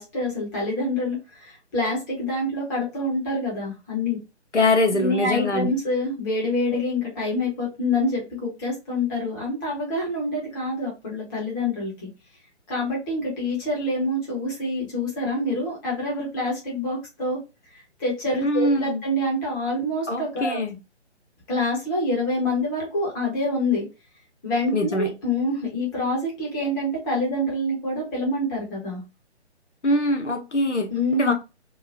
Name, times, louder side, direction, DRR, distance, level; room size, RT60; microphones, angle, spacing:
voice 1, 0.0-4.2 4.9-12.1 12.7-17.4 18.0-20.6 21.5-23.8 24.4-29.0 30.9-31.3, left 1 dB, 15° left, 1.2 m, -26 dB
voice 2, 4.5-5.7 18.4-19.0 20.1-20.7 24.7-25.1 29.8-31.3, left 1 dB, 80° left, 0.8 m, -23 dB
3.8 x 2.2 x 2.6 m
figure-of-eight pair, 140°, 34 cm